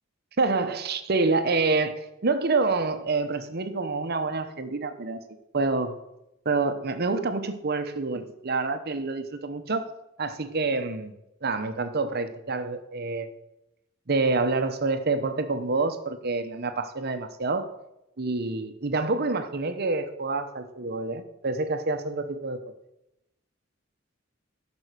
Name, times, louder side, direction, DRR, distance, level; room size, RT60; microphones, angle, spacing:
voice 1, 0.4-5.2 5.5-6.0 6.4-9.9 10.2-11.1 11.4-13.3 14.1-17.7 18.2-22.6, right 3 dB, 55° right, 9 dB, 0.9 m, -27 dB
12.0 x 5.4 x 6.7 m, 0.89 s
head